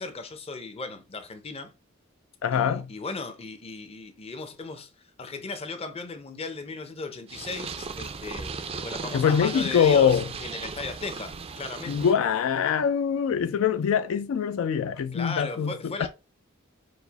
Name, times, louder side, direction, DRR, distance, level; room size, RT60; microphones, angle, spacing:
voice 1, 0.0-1.7 2.5-4.9 5.2-8.5 8.8-12.1 15.1-16.1, left 3 dB, 30° left, 0.6 m, -36 dB
voice 2, 2.4-2.9 9.1-10.3 11.9-16.1, left 7 dB, 75° left, 0.3 m, -23 dB
Purr, 7.3-12.1, right 5 dB, 30° right, 0.4 m, -37 dB
4.7 x 2.0 x 3.9 m
head